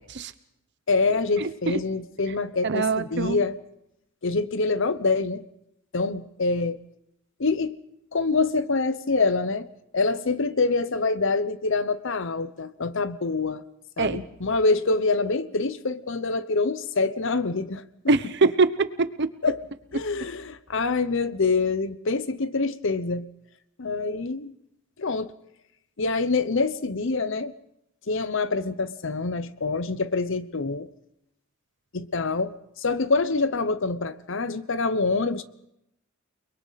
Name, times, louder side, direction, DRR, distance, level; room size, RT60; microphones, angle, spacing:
voice 1, 0.9-3.6 4.2-5.4 5.9-6.8 7.4-7.7 8.1-9.7 9.9-13.6 14.0-17.8 19.4-19.6 19.9-23.3 23.8-24.5 25.0-25.3 26.0-27.5 28.1-30.9 31.9-32.5 32.8-35.4, left 3 dB, 65° left, 0.9 m, -25 dB
voice 2, 1.4-1.8 2.6-3.4 14.0-14.2 18.1-19.3, right 3 dB, 55° right, 0.9 m, -23 dB
29.5 x 21.5 x 4.1 m
head